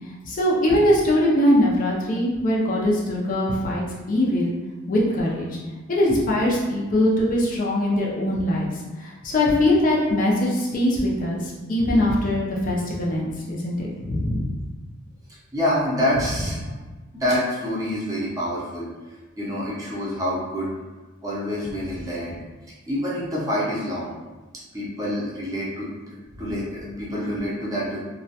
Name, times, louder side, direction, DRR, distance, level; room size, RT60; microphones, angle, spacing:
voice 1, 0.2-3.8 4.1-4.5 4.9-5.5 5.9-8.7 9.0-14.6, left 1 dB, 40° left, -3 dB, 0.4 m, -22 dB
voice 2, 15.5-16.8 17.1-19.1 19.4-20.7 21.2-22.4 22.9-24.1 24.7-25.9 26.4-28.0, equal, 15° right, -7 dB, 0.5 m, -27 dB
2.3 x 2.1 x 2.7 m, 1.2 s
head